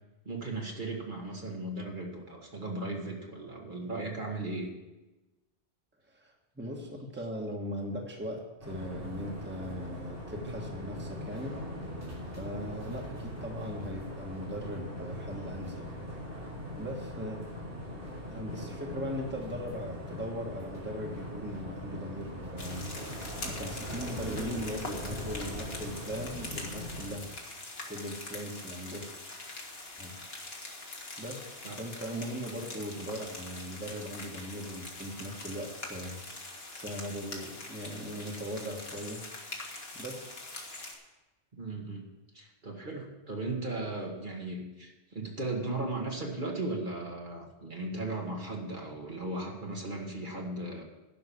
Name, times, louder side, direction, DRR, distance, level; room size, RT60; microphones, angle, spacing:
voice 1, 0.2-4.7 31.6-31.8 41.5-42.1 42.3-50.8, right 2 dB, 45° right, 0 dB, 1.7 m, -36 dB
voice 2, 6.1-11.6 12.4-15.9 16.8-17.4 18.3-22.9 23.4-27.3 27.9-29.1 30.0-30.1 31.2-36.2 36.7-39.2 39.9-40.3, equal, 10° right, 0 dB, 1.4 m, -39 dB
sound 1, 8.6-27.1, equal, 85° right, 3.9 m, -40 dB
sound 2, 22.6-40.9, left 2 dB, 60° left, 2.0 m, -43 dB
11.0 x 5.8 x 8.4 m, 1.1 s
omnidirectional pair, 1.1 m